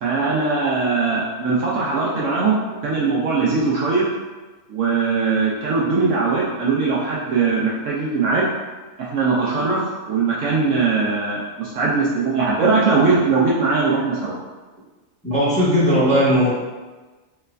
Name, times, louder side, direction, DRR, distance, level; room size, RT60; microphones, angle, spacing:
voice 1, 0.0-4.0 4.7-8.4 9.0-14.3, right 4 dB, 65° right, -5 dB, 0.9 m, -20 dB
voice 2, 15.2-16.5, equal, 5° left, -12 dB, 1.3 m, -17 dB
4.4 x 3.1 x 2.5 m, 1.3 s
omnidirectional pair, 1.5 m